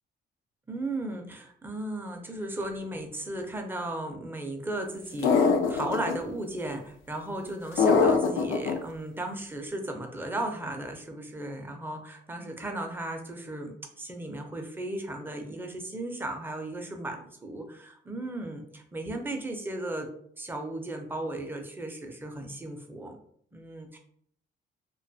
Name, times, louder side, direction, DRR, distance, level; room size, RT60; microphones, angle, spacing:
voice 1, 0.7-20.1 20.4-23.2 23.5-24.0, right 1 dB, 10° right, 3 dB, 0.5 m, -36 dB
sound 1, 5.2-6.1 7.8-8.7, left 5 dB, 85° left, 0.4 m, -22 dB
2.5 x 2.2 x 2.6 m, 0.65 s
cardioid pair, 90°, 20 cm